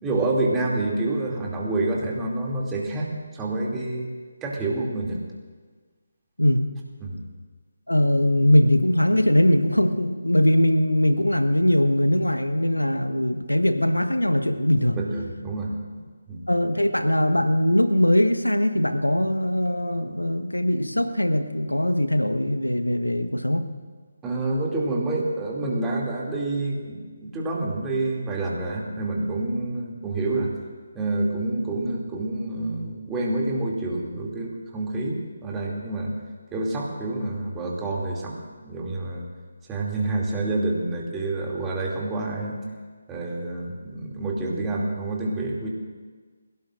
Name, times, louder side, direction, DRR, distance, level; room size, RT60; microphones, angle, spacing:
voice 1, 0.0-4.1 4.4-5.2 7.0-7.2 15.0-15.7 16.3-16.4 24.2-30.5 30.9-36.1 36.5-38.4 38.6-39.3 39.7-42.6 43.1-45.7, right 2 dB, 10° right, -3 dB, 2.6 m, -28 dB
voice 2, 7.9-15.0 16.5-23.7, left 1 dB, 85° left, 7 dB, 1.3 m, -21 dB
28.5 x 17.0 x 2.6 m, 1.5 s
figure-of-eight pair, 150°, 0 cm